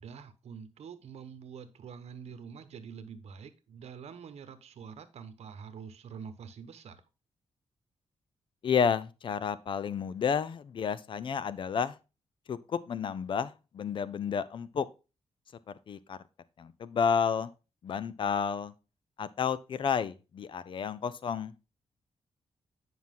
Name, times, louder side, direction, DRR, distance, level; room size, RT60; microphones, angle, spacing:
voice 1, 0.0-7.0, right 6 dB, 70° right, 1.1 m, -46 dB
voice 2, 8.6-12.0 12.5-14.9 15.9-16.2 16.6-17.5 17.8-18.7 19.2-21.5, left 7 dB, 50° left, 0.6 m, -31 dB
9.6 x 5.9 x 3.7 m
wide cardioid pair, 155°, 11 cm